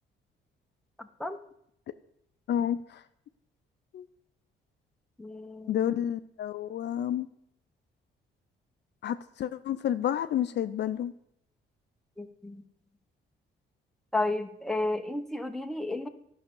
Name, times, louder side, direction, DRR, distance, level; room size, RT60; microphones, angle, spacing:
voice 1, 1.0-1.4 5.2-5.9 12.2-12.6 14.1-16.1, left 2 dB, ahead, 6 dB, 0.9 m, -32 dB
voice 2, 2.5-3.0 3.9-4.1 5.7-7.3 9.0-11.1, left 10 dB, 60° left, 11 dB, 0.6 m, -30 dB
11.0 x 5.8 x 6.9 m, 0.73 s
cardioid pair, 90°, 20 cm